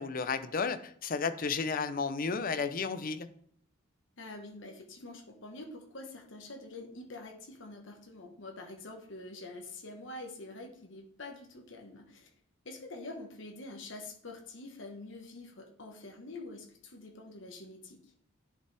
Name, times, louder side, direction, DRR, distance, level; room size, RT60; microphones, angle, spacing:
voice 1, 0.0-3.3, left 5 dB, 45° left, 12 dB, 0.5 m, -33 dB
voice 2, 4.2-12.3 12.6-18.0, left 2 dB, 65° left, 2 dB, 1.3 m, -46 dB
10.0 x 5.3 x 3.4 m, 0.62 s
head